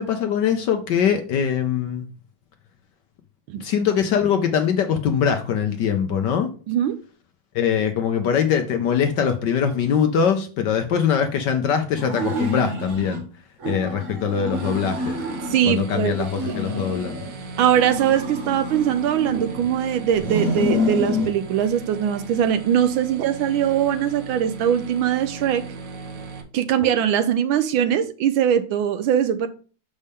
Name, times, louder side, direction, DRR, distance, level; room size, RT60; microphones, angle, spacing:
voice 1, 0.0-2.0 3.6-6.5 7.5-13.2 13.6-15.2 15.6-17.2, left 7 dB, 65° left, 6 dB, 1.2 m, -22 dB
voice 2, 6.7-7.0 15.5-16.1 17.6-25.6 26.5-29.5, right 9 dB, 75° right, 11 dB, 1.3 m, -21 dB
sound 1, 12.0-13.2 13.6-15.7 16.1-17.3 17.7-19.7 20.1-21.3, left 1 dB, 40° right, 1.7 m, -28 dB
sound 2, 14.5-26.4, right 3 dB, 55° right, 1.5 m, -37 dB
6.7 x 5.4 x 3.5 m, 0.38 s
omnidirectional pair, 2.4 m